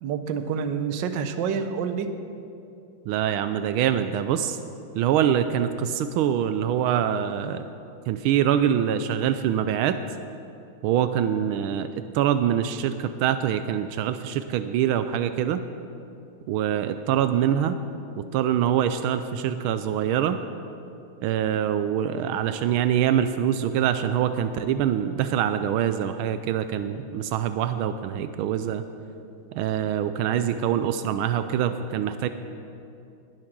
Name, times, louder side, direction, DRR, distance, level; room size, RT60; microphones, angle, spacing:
voice 1, 0.0-2.1, right 6 dB, 70° right, 9 dB, 1.4 m, -28 dB
voice 2, 3.1-4.6 4.9-7.6 8.1-10.0 10.8-11.9 12.1-15.6 16.5-17.8 18.2-20.4 21.2-28.8 29.5-32.3, right 9 dB, 85° right, 10 dB, 1.4 m, -24 dB
19.5 x 7.6 x 6.0 m, 2.6 s
omnidirectional pair, 2.3 m